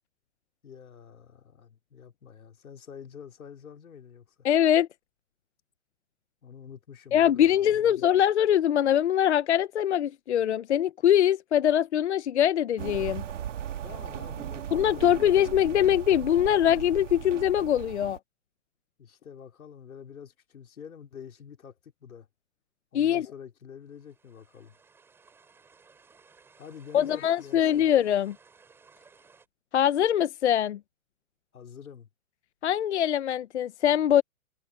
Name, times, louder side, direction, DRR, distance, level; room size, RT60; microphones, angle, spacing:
voice 1, 0.6-4.5 6.4-8.1 13.8-15.5 19.0-22.3 22.9-24.8 26.6-27.9 31.5-32.1, left 7 dB, 85° left, 5.0 m, -47 dB
voice 2, 4.4-4.9 7.1-13.2 14.7-18.2 22.9-23.3 26.9-28.3 29.7-30.8 32.6-34.2, left 10 dB, 55° left, 0.8 m, -23 dB
sound 1, 12.8-18.2, right 10 dB, 60° right, 1.9 m, -37 dB
sound 2, 23.9-29.5, right 5 dB, 5° right, 3.4 m, -59 dB
hypercardioid pair, 175°, 41 cm